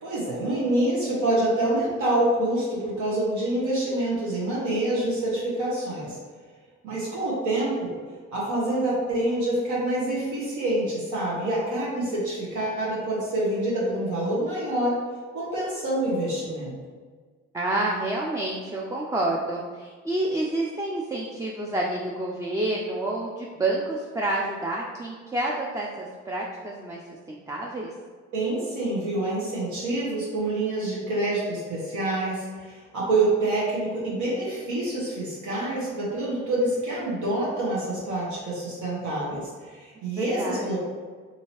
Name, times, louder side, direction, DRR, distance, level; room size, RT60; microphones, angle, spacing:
voice 1, 0.0-6.2 6.8-7.9 8.3-15.0 15.3-16.7 28.3-40.8, right 1 dB, 65° right, -7 dB, 1.0 m, -26 dB
voice 2, 17.5-27.0 27.3-27.9 40.2-40.8, right 2 dB, 10° right, -2 dB, 0.4 m, -29 dB
2.7 x 2.7 x 2.9 m, 1.5 s
supercardioid pair, 50°, 32 cm